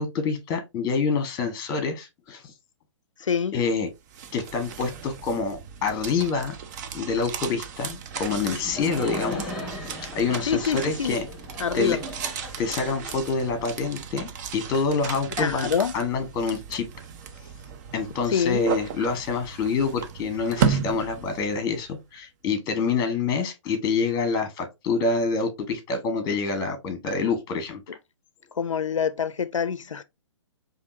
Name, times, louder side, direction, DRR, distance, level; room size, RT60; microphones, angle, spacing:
voice 1, 0.0-2.5 3.5-3.9 4.3-6.5 6.9-9.5 9.8-11.2 11.7-12.0 12.6-15.7 15.9-16.8 17.9-27.8, left 4 dB, 25° left, 1.2 m, -27 dB
voice 2, 3.2-3.5 10.5-11.2 11.6-12.0 15.4-15.9 18.3-18.7 28.6-30.0, left 7 dB, 90° left, 0.4 m, -25 dB
sound 1, 3.9-21.9, right 7 dB, 35° right, 0.6 m, -34 dB
Laughter, 8.2-14.0, equal, ahead, 1.7 m, -38 dB
5.0 x 2.7 x 2.6 m
hypercardioid pair, 130°, 16 cm